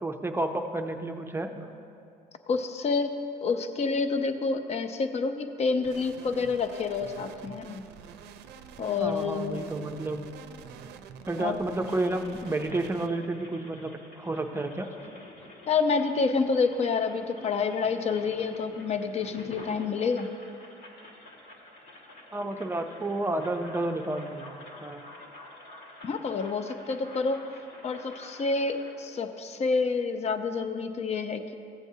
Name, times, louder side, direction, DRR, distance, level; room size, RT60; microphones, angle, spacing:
voice 1, 0.0-1.7 9.0-10.2 11.3-13.9 14.2-14.9 22.3-25.0, right 2 dB, 15° right, 4 dB, 0.5 m, -31 dB
voice 2, 2.5-3.1 3.4-7.9 8.8-9.6 11.4-11.6 15.7-20.3 26.0-27.4 27.8-31.5, left 4 dB, 40° left, 8 dB, 0.6 m, -28 dB
sound 1, 5.8-13.1, right 7 dB, 80° right, 0.5 m, -47 dB
sound 2, 11.8-28.9, left 2 dB, 70° left, 1.8 m, -49 dB
15.0 x 8.0 x 2.7 m, 2.5 s
cardioid pair, 110°, 17 cm